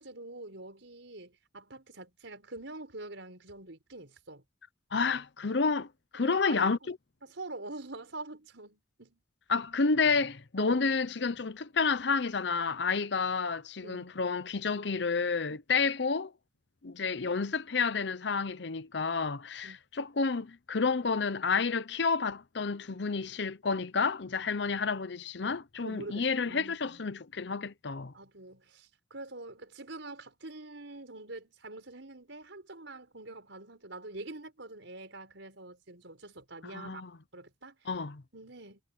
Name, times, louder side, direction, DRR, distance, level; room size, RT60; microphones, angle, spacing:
voice 1, 0.0-4.4 6.2-6.8 7.2-9.2 10.6-10.8 13.8-14.1 15.5-15.6 19.6-19.8 25.8-27.0 28.1-37.0 37.3-37.9 38.3-38.8, right 2 dB, 80° right, 5.0 m, -45 dB
voice 2, 4.9-7.0 9.5-16.3 16.8-28.1 36.6-37.1 37.9-38.2, left 4 dB, 65° left, 0.8 m, -30 dB
head